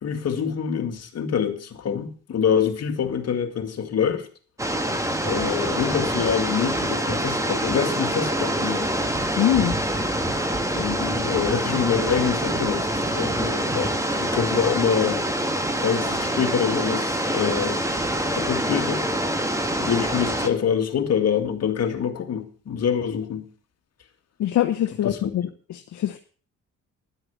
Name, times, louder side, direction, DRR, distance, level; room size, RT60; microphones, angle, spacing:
voice 1, 0.0-4.3 5.2-8.9 10.7-15.2 15.8-17.8 18.3-19.0 19.8-23.5 25.0-25.3, left 7 dB, 55° left, 2.2 m, -25 dB
sound 1, 4.6-20.5, right 1 dB, 10° right, 1.9 m, -25 dB
voice 2, 9.4-9.7 24.4-25.4 25.7-26.2, left 11 dB, 70° left, 1.0 m, -23 dB
12.0 x 7.9 x 7.1 m
cardioid pair, 90°, 30 cm